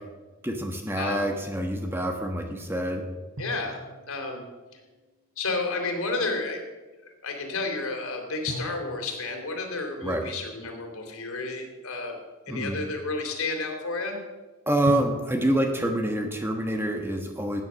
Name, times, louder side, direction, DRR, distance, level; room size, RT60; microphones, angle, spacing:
voice 1, 0.4-3.0 10.0-10.2 12.5-12.8 14.7-17.6, right 1 dB, 10° right, 4 dB, 1.2 m, -27 dB
voice 2, 0.9-1.3 3.4-3.8 4.1-4.4 5.4-6.6 7.0-12.1 12.5-14.2, left 3 dB, 75° left, 3 dB, 3.2 m, -31 dB
sound 1, 3.4-5.6 8.5-11.4 14.9-16.7, equal, 60° right, 4.4 m, -41 dB
16.5 x 9.6 x 6.3 m, 1.2 s
head